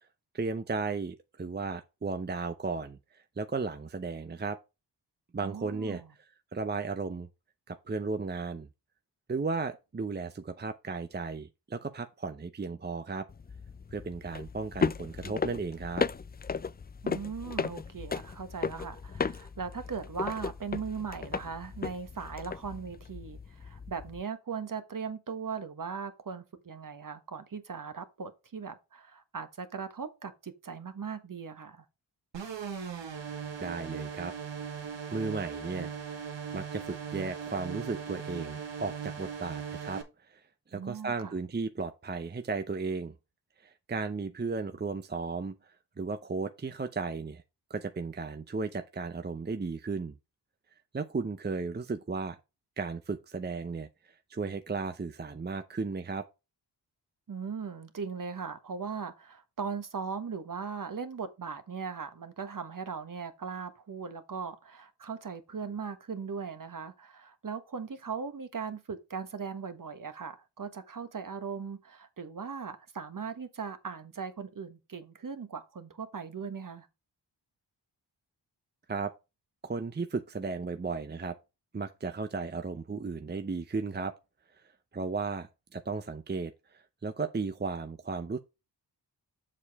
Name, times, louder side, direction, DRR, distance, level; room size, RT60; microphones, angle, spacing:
voice 1, 0.3-4.6 5.3-6.0 6.5-7.3 7.7-8.7 9.3-13.3 13.9-16.1 33.6-34.3 35.1-35.9 36.5-40.0 40.3-40.4 40.7-43.1 43.6-47.4 47.7-50.1 50.9-52.4 52.8-53.9 54.3-56.3 78.9-79.1 79.6-81.4 81.7-84.1 84.9-88.4, right 4 dB, 25° right, 0.7 m, -35 dB
voice 2, 5.4-6.1 17.0-31.8 40.7-41.3 57.3-76.9, right 5 dB, 45° right, 1.4 m, -39 dB
sound 1, 13.3-24.2, left 5 dB, 25° left, 0.4 m, -36 dB
sound 2, 32.3-40.0, right 7 dB, 85° right, 2.0 m, -39 dB
7.4 x 6.5 x 3.6 m
cardioid pair, 75°, 43 cm